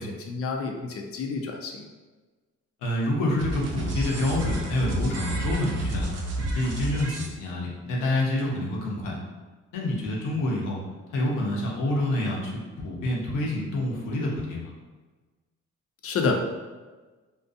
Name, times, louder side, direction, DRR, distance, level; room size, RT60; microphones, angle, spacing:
voice 1, 0.0-1.9 16.0-16.3, left 4 dB, 50° left, 2 dB, 0.5 m, -29 dB
voice 2, 2.8-6.1 6.5-9.2 9.7-10.8 11.1-14.7, left 1 dB, 90° left, -2 dB, 0.7 m, -27 dB
sound 1, 3.4-7.3, right 1 dB, 55° right, 0.5 m, -30 dB
2.5 x 2.2 x 2.5 m, 1.3 s
cardioid pair, 90°, 30 cm